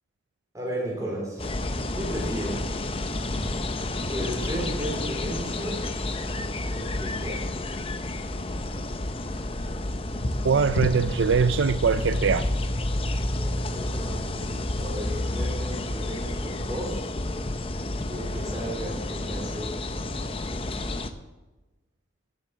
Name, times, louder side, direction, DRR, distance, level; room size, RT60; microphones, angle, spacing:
voice 1, 0.5-1.6 1.9-3.1 4.1-5.9 6.7-7.5 13.4-17.1 18.1-20.0, right 1 dB, 20° right, -2 dB, 3.7 m, -35 dB
sound 1, 1.4-21.1, left 1 dB, 30° left, 0.7 m, -30 dB
voice 2, 10.4-12.5, right 5 dB, 80° right, 12 dB, 0.4 m, -22 dB
14.5 x 7.9 x 7.2 m, 1.1 s
head